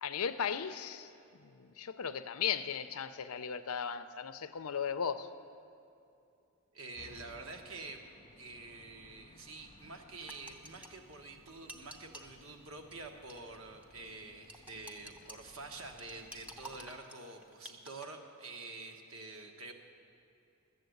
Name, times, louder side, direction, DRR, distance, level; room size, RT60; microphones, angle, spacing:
voice 1, 0.0-5.3, left 7 dB, 80° left, 0.5 m, -37 dB
voice 2, 6.7-8.0 8.4-19.7, right 3 dB, 65° right, 1.3 m, -47 dB
sound 1, 6.9-17.0, left 2 dB, 25° left, 0.4 m, -61 dB
sound 2, 10.2-12.3 12.9-13.0 13.3-13.6 13.8-13.9 14.5-15.3 15.8-18.1, right 1 dB, 5° right, 0.7 m, -50 dB
13.0 x 7.6 x 7.9 m
head